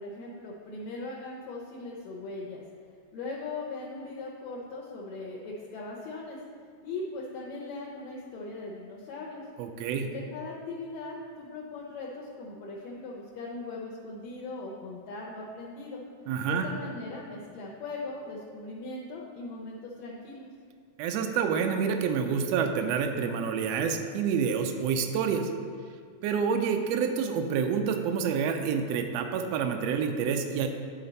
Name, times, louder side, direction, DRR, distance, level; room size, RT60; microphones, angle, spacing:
voice 1, 0.0-2.6 3.1-6.4 6.8-9.5 9.9-16.0 16.5-20.5, left 3 dB, 75° left, -3 dB, 2.0 m, -39 dB
voice 2, 9.6-10.1 16.3-16.7 21.0-25.5 26.2-30.7, right 6 dB, 75° right, 5 dB, 1.6 m, -28 dB
11.0 x 4.3 x 4.0 m, 2.1 s
omnidirectional pair, 3.3 m